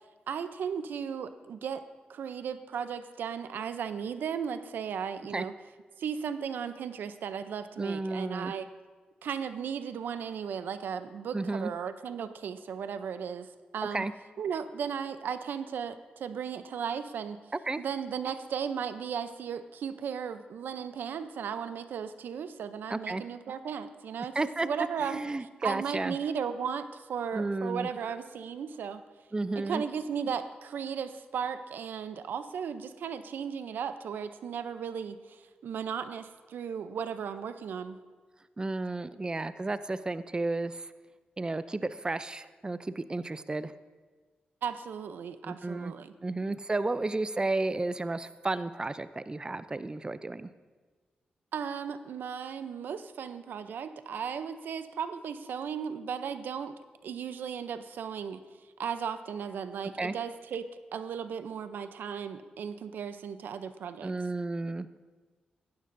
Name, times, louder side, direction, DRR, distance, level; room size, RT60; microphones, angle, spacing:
voice 1, 0.3-1.8 2.1-5.5 6.0-8.7 9.2-14.1 14.4-17.4 17.8-24.4 24.6-25.2 25.6-29.0 29.6-38.0 44.6-46.1 51.5-56.7 57.0-58.4 58.8-64.1, right 7 dB, 80° right, 11 dB, 0.6 m, -36 dB
voice 2, 7.8-8.5 11.3-11.7 13.9-14.1 17.7-17.8 22.9-23.2 24.3-24.7 25.0-26.2 27.3-27.9 29.3-29.8 38.6-40.9 41.4-43.7 45.4-45.9 46.2-50.5 60.0-60.1 64.0-65.0, right 2 dB, 25° right, 13 dB, 0.5 m, -32 dB
16.0 x 12.0 x 2.6 m, 1.4 s
cardioid pair, 55°, 3 cm